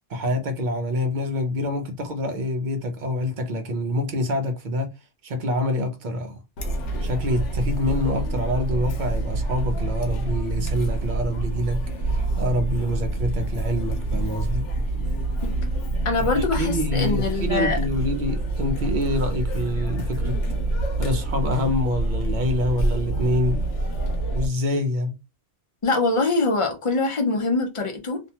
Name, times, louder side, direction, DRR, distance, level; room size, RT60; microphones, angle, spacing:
voice 1, 0.1-4.9 5.2-6.4 7.0-11.8 12.1-14.6 16.3-20.4 21.0-23.7 24.3-25.2, left 1 dB, 50° right, 0.7 m, -26 dB
Chatter, 6.6-24.5, right 2 dB, 80° left, 1.0 m, -26 dB
voice 2, 16.0-17.8 25.8-28.2, left 3 dB, 35° left, 0.5 m, -23 dB
2.6 x 2.2 x 2.8 m
omnidirectional pair, 1.2 m